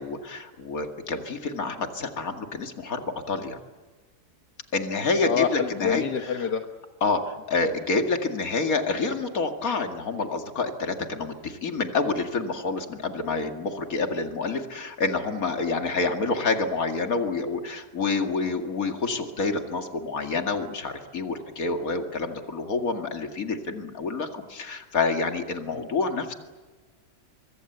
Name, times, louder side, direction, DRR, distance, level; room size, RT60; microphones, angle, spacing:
voice 1, 0.0-3.6 4.7-6.0 7.0-26.3, left 3 dB, 60° left, 5 dB, 2.6 m, -28 dB
voice 2, 5.2-6.6 25.7-25.9, left 7 dB, 80° left, 5 dB, 1.9 m, -27 dB
24.5 x 24.0 x 8.1 m, 1.3 s
omnidirectional pair, 1.7 m